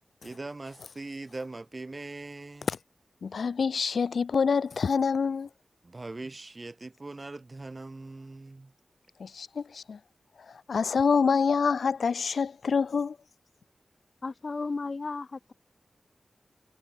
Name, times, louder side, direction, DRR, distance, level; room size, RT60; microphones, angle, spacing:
voice 1, 0.2-2.7 5.8-8.7, right 2 dB, 30° right, 0.7 m, -41 dB
voice 2, 3.2-5.5 9.2-10.0 10.5-13.2, left 5 dB, 80° left, 0.6 m, -26 dB
voice 3, 14.2-15.5, left 3 dB, 45° left, 1.6 m, -34 dB
wide cardioid pair, 120°, 0 cm